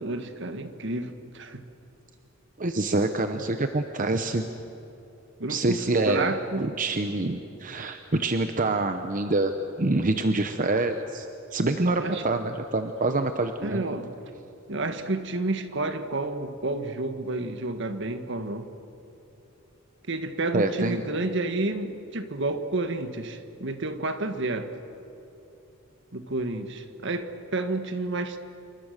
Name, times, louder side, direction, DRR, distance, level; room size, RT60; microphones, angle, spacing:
voice 1, 0.0-1.6 3.3-3.5 5.4-6.7 12.0-12.3 13.6-14.1 14.7-18.6 20.1-24.7 26.1-28.4, right 2 dB, 60° right, 8 dB, 1.6 m, -30 dB
voice 2, 2.6-4.4 5.5-9.5 9.8-13.8 20.5-21.0, right 2 dB, 40° right, 7 dB, 0.9 m, -26 dB
28.0 x 24.5 x 6.7 m, 2.9 s
head